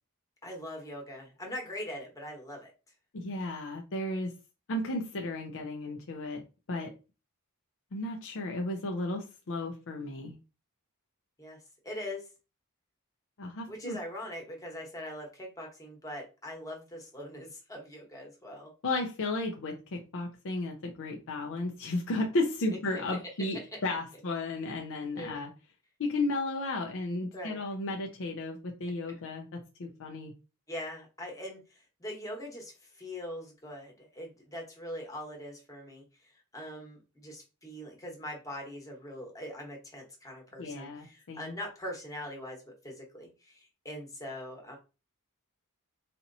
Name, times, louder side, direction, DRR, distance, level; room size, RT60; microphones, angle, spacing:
voice 1, 0.4-2.7 11.4-11.6 11.8-12.3 13.7-18.7 23.5-23.8 25.1-25.4 27.3-27.6 30.7-44.8, left 1 dB, 15° left, 0 dB, 1.1 m, -42 dB
voice 2, 3.1-4.3 4.7-6.4 6.7-6.9 7.9-10.4 13.4-14.0 18.8-25.5 26.0-30.3 40.6-41.6, left 2 dB, 60° left, 2 dB, 0.6 m, -34 dB
4.2 x 2.8 x 2.6 m, 0.31 s
head